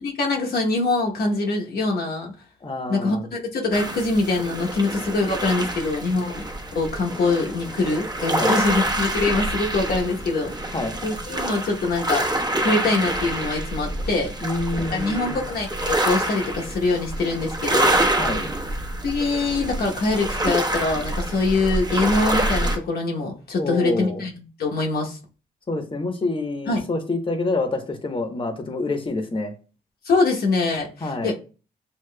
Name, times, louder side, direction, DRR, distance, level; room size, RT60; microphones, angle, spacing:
voice 1, 0.0-2.3 2.9-6.4 6.7-10.8 11.0-12.3 12.6-14.3 14.9-18.1 19.0-24.3 24.6-25.2 26.7-26.8 30.0-31.3, left 3 dB, 70° left, 1.0 m, -24 dB
voice 2, 2.6-3.3 8.3-8.5 10.7-11.0 14.4-15.4 18.2-18.5 23.6-24.2 25.7-29.5 31.0-31.3, left 2 dB, 30° left, 1.0 m, -27 dB
sound 1, 3.7-22.8, right 1 dB, 25° right, 1.0 m, -26 dB
6.6 x 2.9 x 2.2 m
cardioid pair, 60°, 17 cm